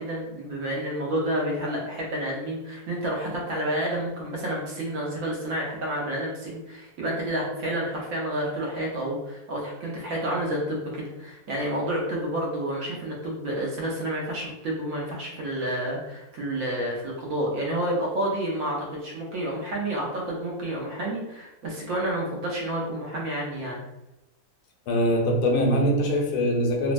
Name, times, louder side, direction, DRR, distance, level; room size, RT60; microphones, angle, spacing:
voice 1, 0.0-23.8, right 1 dB, 65° right, -3 dB, 1.1 m, -29 dB
voice 2, 24.9-26.9, equal, 85° left, 2 dB, 1.2 m, -22 dB
3.2 x 2.1 x 2.5 m, 0.93 s
omnidirectional pair, 1.7 m